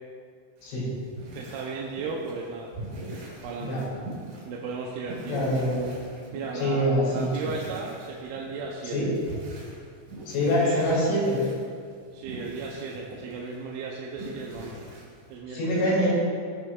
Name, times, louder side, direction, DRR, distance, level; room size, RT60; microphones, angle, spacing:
sound 1, 0.6-15.3, right 1 dB, 65° right, 4.0 m, -43 dB
voice 1, 1.3-2.7 3.4-3.8 4.4-5.4 6.3-9.1 10.5-10.9 12.1-14.8 15.3-15.8, right 4 dB, 80° right, -2 dB, 3.0 m, -35 dB
voice 2, 5.3-5.9 6.6-7.5 8.9-9.1 10.3-11.4 15.5-16.1, equal, 75° left, -6 dB, 5.1 m, -24 dB
17.5 x 7.5 x 2.4 m, 2.1 s
omnidirectional pair, 5.8 m